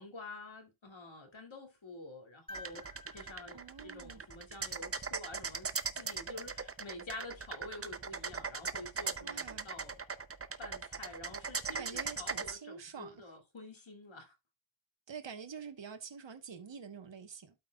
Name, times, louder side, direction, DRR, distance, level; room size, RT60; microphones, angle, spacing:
voice 1, 0.0-5.7 6.0-10.0 10.6-14.3, left 2 dB, 65° left, 2.4 m, -48 dB
sound 1, 2.5-4.8 6.8-6.9, left 2 dB, 10° left, 1.3 m, -53 dB
sound 2, 2.5-12.5, right 5 dB, 30° right, 0.6 m, -39 dB
voice 2, 3.5-4.2 9.2-9.7 11.8-13.2 15.1-17.5, right 6 dB, 60° right, 1.2 m, -47 dB
12.5 x 5.3 x 2.3 m
wide cardioid pair, 80°, 49 cm